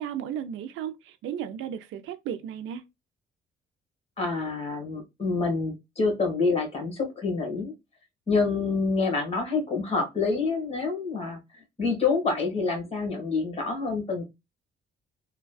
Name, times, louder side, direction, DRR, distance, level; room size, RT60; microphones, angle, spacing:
voice 1, 0.0-2.8, right 9 dB, 85° right, 0.4 m, -34 dB
voice 2, 4.2-7.7 8.3-11.4 11.8-14.2, left 4 dB, 30° left, 1.6 m, -27 dB
3.3 x 2.2 x 2.2 m
cardioid pair, 90°, 20 cm